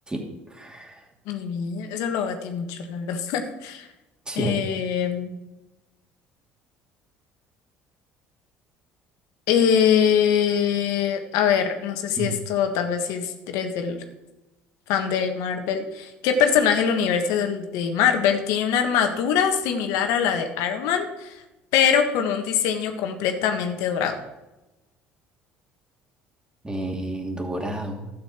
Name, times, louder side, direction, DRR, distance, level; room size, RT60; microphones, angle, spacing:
voice 1, 0.1-1.0 4.3-4.7 12.2-12.3 26.6-28.1, right 2 dB, 15° right, 1 dB, 2.9 m, -31 dB
voice 2, 1.3-3.9 4.3-5.3 9.5-14.0 14.9-21.3 21.7-24.2, left 8 dB, 70° left, 6 dB, 1.4 m, -23 dB
12.5 x 8.6 x 4.4 m, 0.99 s
hypercardioid pair, 65°, 6 cm